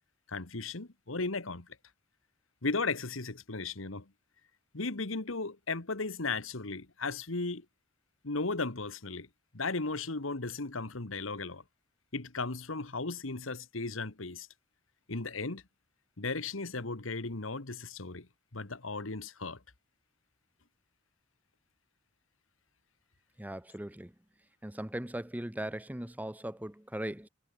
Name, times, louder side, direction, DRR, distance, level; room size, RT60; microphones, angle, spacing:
voice 1, 0.3-1.7 2.6-4.1 4.7-7.7 8.2-9.3 9.5-11.6 12.1-14.5 15.1-15.6 16.2-18.3 18.5-19.6, left 3 dB, 80° left, 1.8 m, -36 dB
voice 2, 23.4-24.1 24.6-27.3, right 1 dB, 10° right, 1.0 m, -39 dB
head